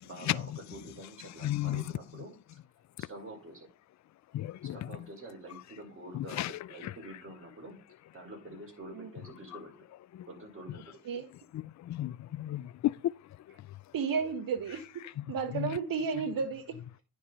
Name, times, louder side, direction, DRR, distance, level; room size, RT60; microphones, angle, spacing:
voice 1, 0.0-2.3 3.0-3.7 4.7-7.8 8.1-9.7 10.3-11.0, right 1 dB, 30° right, 5.0 m, -47 dB
voice 2, 1.4-1.8 4.3-4.8 6.1-6.5 6.8-6.9 11.9-12.9 15.6-15.7, left 14 dB, 45° left, 0.5 m, -32 dB
voice 3, 13.9-16.8, right 5 dB, 55° right, 1.8 m, -33 dB
9.9 x 5.1 x 5.4 m
supercardioid pair, 60°, 41 cm